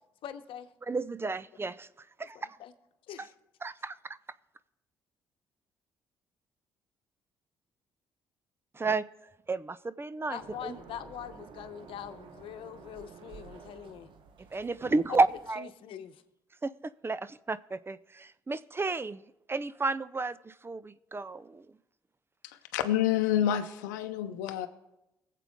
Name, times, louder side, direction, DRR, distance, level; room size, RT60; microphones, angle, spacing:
voice 1, 0.2-0.7 2.2-2.7 3.1-3.3 10.3-14.1 14.8-15.2 15.6-16.2, left 10 dB, 70° left, 9 dB, 0.9 m, -43 dB
voice 2, 0.9-1.9 2.2-2.4 3.2-3.3 3.6-4.2 8.7-9.0 9.5-10.8 14.5-15.7 16.6-19.2 19.5-21.7, right 3 dB, 25° right, 17 dB, 0.5 m, -32 dB
sound 1, 10.4-15.5, right 6 dB, 60° right, 1.2 m, -51 dB
voice 3, 22.4-24.7, left 11 dB, 90° left, 8 dB, 0.6 m, -28 dB
22.5 x 7.5 x 3.6 m, 0.93 s
hypercardioid pair, 50°, 10 cm